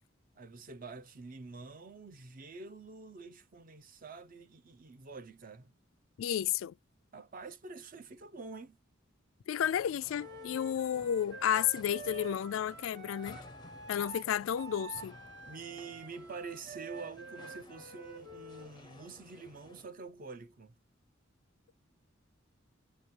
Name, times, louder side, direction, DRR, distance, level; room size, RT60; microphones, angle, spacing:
voice 1, 0.4-5.7 7.1-8.8 15.5-20.7, right 4 dB, 45° right, 0.6 m, -47 dB
voice 2, 6.2-6.7 9.5-13.4 13.9-15.2, left 9 dB, 85° left, 0.3 m, -32 dB
sound 1, 9.6-19.9, left 3 dB, 20° left, 0.5 m, -56 dB
Wind instrument woodwind instrument, 10.2-18.7, right 4 dB, 60° right, 1.1 m, -48 dB
3.0 x 2.7 x 4.4 m
head